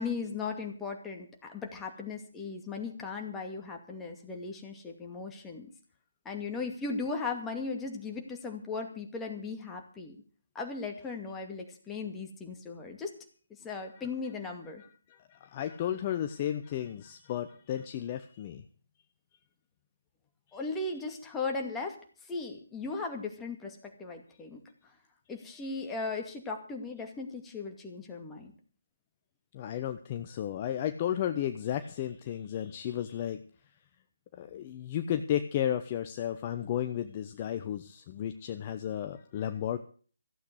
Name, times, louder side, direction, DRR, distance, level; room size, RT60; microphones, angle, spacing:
voice 1, 0.0-5.7 6.2-10.2 10.5-13.1 13.6-14.8 20.5-22.0 22.3-24.6 25.3-28.5, left 4 dB, 10° left, 2 dB, 2.3 m, -37 dB
voice 2, 14.8-18.6 29.5-33.4 34.3-39.8, left 10 dB, 30° left, 8 dB, 0.9 m, -33 dB
15.0 x 8.3 x 8.1 m, 0.42 s
figure-of-eight pair, 145°, 0 cm